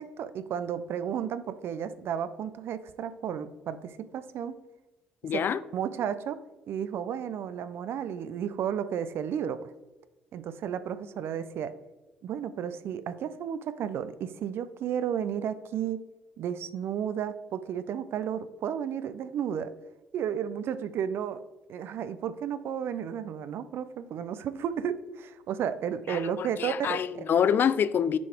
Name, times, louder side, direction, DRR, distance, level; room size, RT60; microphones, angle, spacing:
voice 1, 0.0-4.5 5.7-6.4 6.7-9.7 10.3-11.7 12.2-16.0 16.4-19.7 20.1-21.4 21.7-27.2, right 8 dB, 65° right, 0.4 m, -33 dB
voice 2, 5.2-5.6 26.1-28.2, left 8 dB, 55° left, 0.3 m, -26 dB
6.0 x 3.9 x 4.4 m
hypercardioid pair, 50°, 4 cm